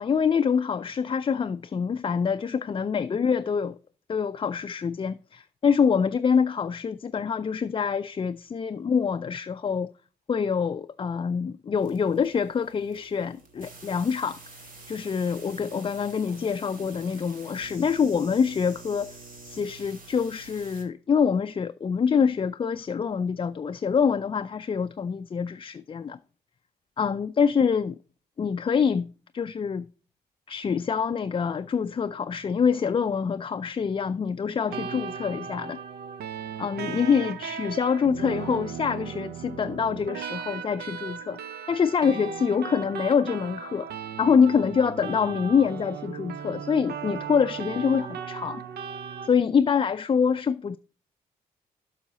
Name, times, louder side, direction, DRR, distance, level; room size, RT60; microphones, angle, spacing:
voice 1, 0.0-3.8 4.1-9.9 10.3-14.4 14.9-19.1 19.4-26.2 27.0-28.0 28.4-29.9 30.5-35.8 36.6-41.4 41.7-43.9 44.2-48.6 49.2-50.8, left 6 dB, 30° left, 0.3 m, -25 dB
sound 1, 11.8-20.8, right 3 dB, 55° right, 2.0 m, -47 dB
sound 2, 34.7-49.3, right 7 dB, 70° right, 0.6 m, -37 dB
7.1 x 5.6 x 4.0 m
supercardioid pair, 45°, 17 cm